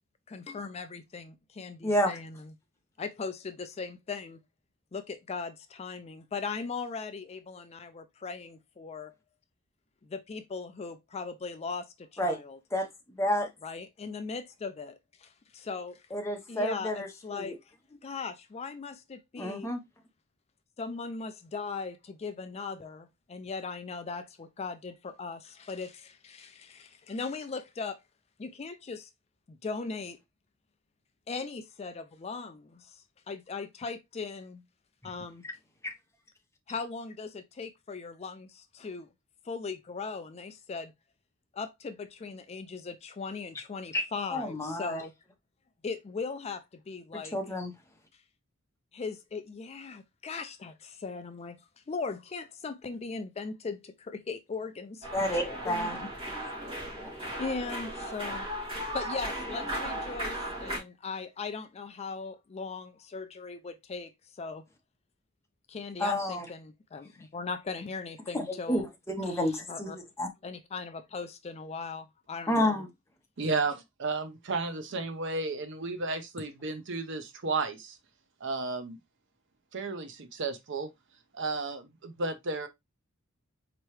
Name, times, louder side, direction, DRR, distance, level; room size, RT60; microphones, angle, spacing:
voice 1, 0.3-2.5 3.0-4.4 4.9-9.1 10.0-12.6 13.6-16.0 16.5-17.7 18.0-19.7 20.8-28.0 28.4-29.1 29.5-30.2 31.3-34.6 35.0-35.4 36.7-39.1 39.5-40.9 41.5-45.1 45.8-47.4 48.9-51.6 51.9-56.4 57.4-58.5 58.9-64.6 65.7-68.9 69.2-70.0 70.4-72.8, left 4 dB, 30° left, 0.4 m, -39 dB
voice 2, 13.2-13.5 16.1-17.5 19.4-19.8 35.4-35.5 35.8-35.9 43.9-44.0 44.3-45.0 47.3-47.7 55.1-56.0 57.0-57.1 66.0-66.5 68.3-70.3 72.5-72.9, left 1 dB, 15° left, 0.9 m, -30 dB
sound 1, 55.0-60.8, right 1 dB, 25° right, 2.3 m, -36 dB
voice 3, 73.4-78.0 78.4-79.0 79.7-80.9 81.3-82.7, right 3 dB, 60° right, 0.7 m, -33 dB
4.5 x 2.9 x 3.1 m
head